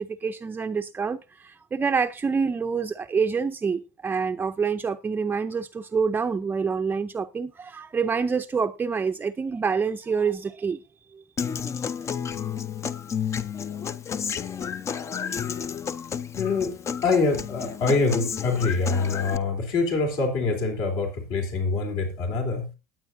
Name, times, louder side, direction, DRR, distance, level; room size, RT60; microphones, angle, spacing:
voice 1, 0.0-10.8 11.1-11.2, right 5 dB, 20° right, 0.6 m, -27 dB
Human voice / Acoustic guitar, 11.4-19.4, left 7 dB, 30° left, 0.7 m, -31 dB
voice 2, 16.4-16.8 17.0-22.7, left 4 dB, 60° left, 3.5 m, -25 dB
19.0 x 8.7 x 2.7 m
hypercardioid pair, 80°, 9 cm